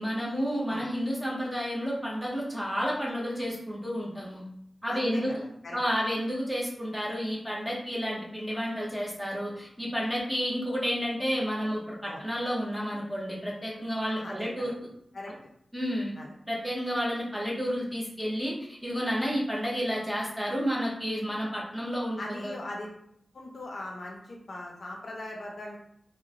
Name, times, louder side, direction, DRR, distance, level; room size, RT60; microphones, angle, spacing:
voice 1, 0.0-4.4 4.8-5.3 5.7-14.7 15.7-16.1 16.5-22.5, equal, 5° right, -4 dB, 0.8 m, -31 dB
voice 2, 4.9-5.8 12.0-12.2 14.2-14.7 15.1-15.3 16.2-16.3 22.2-22.9 23.3-25.8, left 1 dB, 60° left, -1 dB, 0.5 m, -40 dB
2.9 x 2.0 x 2.4 m, 0.70 s
wide cardioid pair, 90°, 0 cm